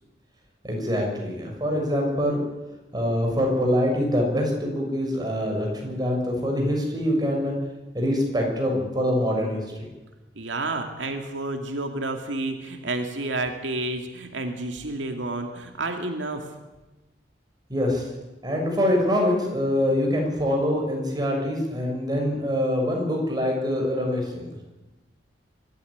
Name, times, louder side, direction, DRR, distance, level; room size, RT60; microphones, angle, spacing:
voice 1, 0.6-2.4 2.9-7.5 7.9-9.9 17.7-18.1 18.4-24.5, equal, 25° right, 0 dB, 6.5 m, -24 dB
voice 2, 10.4-16.6, right 2 dB, 85° right, 4 dB, 2.3 m, -30 dB
24.0 x 13.0 x 9.9 m, 1.1 s
head